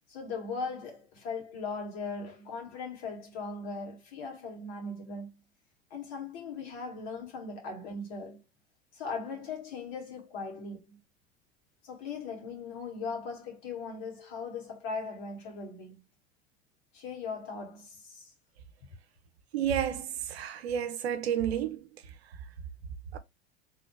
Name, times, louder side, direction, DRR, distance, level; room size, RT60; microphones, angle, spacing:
voice 1, 0.1-5.4 5.9-8.4 8.9-11.0 11.8-16.0 16.9-18.3, left 4 dB, 55° left, 2.2 m, -39 dB
voice 2, 19.5-21.9 23.1-23.2, right 9 dB, 80° right, 0.7 m, -31 dB
3.4 x 3.0 x 3.2 m
hypercardioid pair, 85°, 32 cm